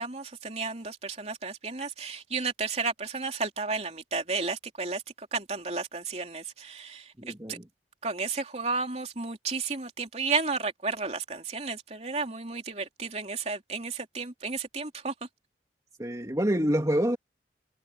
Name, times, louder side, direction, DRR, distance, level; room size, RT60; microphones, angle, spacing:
voice 1, 0.0-7.6 8.0-15.1, right 4 dB, 35° right, 3.5 m, -33 dB
voice 2, 7.2-7.7 16.0-17.2, equal, 20° right, 2.6 m, -27 dB
head